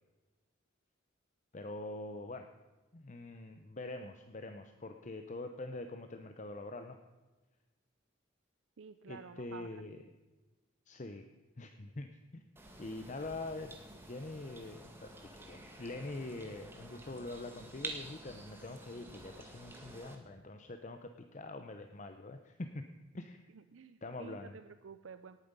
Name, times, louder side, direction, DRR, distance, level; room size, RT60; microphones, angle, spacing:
voice 1, 1.5-2.5 2.9-7.0 9.1-10.0 10.9-11.3 11.6-12.4 12.8-13.7 14.1-22.8 23.1-23.4 24.0-24.6, left 2 dB, 40° left, 7 dB, 0.7 m, -44 dB
voice 2, 8.8-9.8 23.5-25.4, right 5 dB, 85° right, 11 dB, 0.5 m, -51 dB
sound 1, 12.6-20.2, right 2 dB, 10° right, 1.7 m, -49 dB
18.5 x 9.2 x 5.3 m, 1.2 s
head